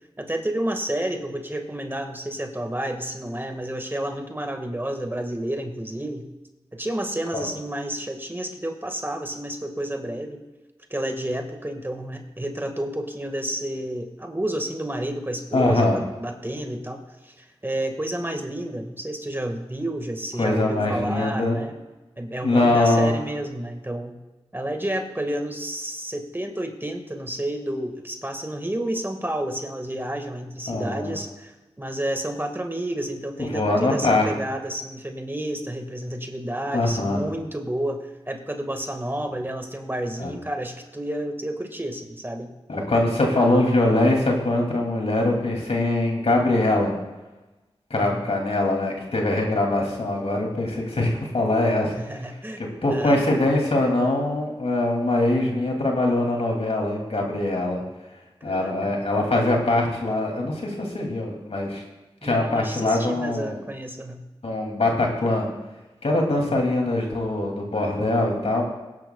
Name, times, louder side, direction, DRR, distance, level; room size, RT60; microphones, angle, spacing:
voice 1, 0.2-6.3 6.7-10.4 10.9-21.7 22.2-24.1 24.5-31.5 31.8-42.5 43.3-43.6 47.9-48.3 51.9-53.2 58.5-58.7 62.2-64.3 66.4-66.6, right 1 dB, 20° right, 4 dB, 1.8 m, -30 dB
voice 2, 15.5-16.0 20.4-21.6 22.4-23.1 30.7-31.1 33.5-34.3 36.7-37.2 40.2-40.3 42.7-47.0 47.9-51.9 52.8-57.8 58.4-61.8 62.2-63.6 64.4-65.5 66.0-68.6, left 2 dB, 70° left, 0 dB, 2.7 m, -22 dB
20.0 x 10.5 x 2.4 m, 1.1 s
cardioid pair, 40°, 11 cm